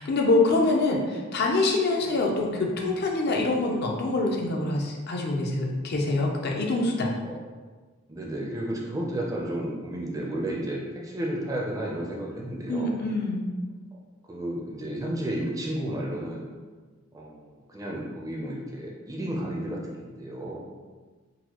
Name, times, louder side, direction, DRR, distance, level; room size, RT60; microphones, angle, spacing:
voice 1, 0.0-7.1 12.7-13.4, left 2 dB, 50° left, 0 dB, 0.5 m, -25 dB
voice 2, 8.1-12.9 14.3-16.5 17.1-20.7, right 1 dB, 15° right, -2 dB, 0.5 m, -32 dB
3.9 x 2.2 x 2.9 m, 1.4 s
head